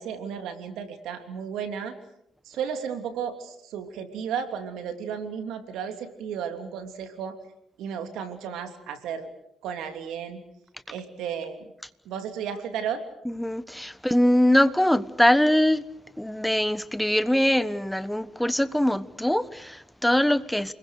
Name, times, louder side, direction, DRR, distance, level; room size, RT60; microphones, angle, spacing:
voice 1, 0.0-1.9 2.4-7.4 7.8-9.3 9.6-10.4 10.9-11.7 12.0-13.0, right 7 dB, 85° right, 3.0 m, -33 dB
voice 2, 13.3-15.8 16.2-20.7, left 1 dB, 5° left, 1.2 m, -22 dB
29.0 x 21.5 x 6.6 m
cardioid pair, 90°, 0 cm